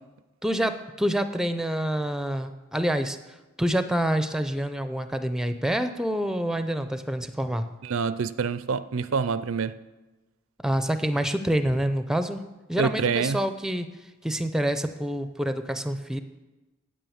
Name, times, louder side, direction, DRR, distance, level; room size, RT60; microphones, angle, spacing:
voice 1, 0.4-3.2 3.6-7.7 10.6-12.4 12.7-13.9 14.2-16.2, right 1 dB, 5° right, 9 dB, 0.5 m, -27 dB
voice 2, 7.8-9.7 12.8-13.4, right 5 dB, 75° right, 14 dB, 0.5 m, -26 dB
9.1 x 8.7 x 7.1 m, 1.1 s
head